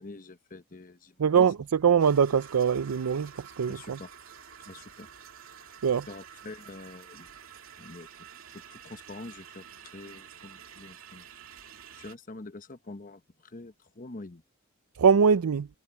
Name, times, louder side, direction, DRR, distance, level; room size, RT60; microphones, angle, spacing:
voice 1, 0.0-1.5 3.7-4.1 4.7-5.1 6.1-7.3 7.8-8.1 8.5-9.6 9.9-11.2 11.9-14.4, left 2 dB, 40° left, 1.0 m, -45 dB
voice 2, 1.2-4.0 5.8-6.1 15.0-15.7, right 6 dB, 90° right, 0.5 m, -23 dB
sound 1, 2.0-12.1, right 8 dB, 65° right, 2.8 m, -49 dB
head